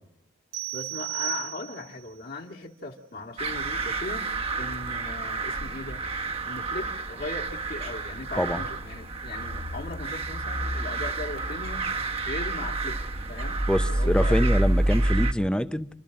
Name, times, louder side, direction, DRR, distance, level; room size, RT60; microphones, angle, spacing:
sound 1, 0.5-2.1, right 19 dB, 80° right, 1.7 m, -34 dB
voice 1, 0.7-4.3 4.6-6.0 6.5-11.9 12.2-13.0 13.3-14.4, left 2 dB, 55° left, 2.1 m, -38 dB
sound 2, 3.4-15.3, right 2 dB, 30° right, 1.1 m, -28 dB
voice 2, 13.7-15.9, equal, 5° left, 0.7 m, -25 dB
28.5 x 13.0 x 7.7 m
head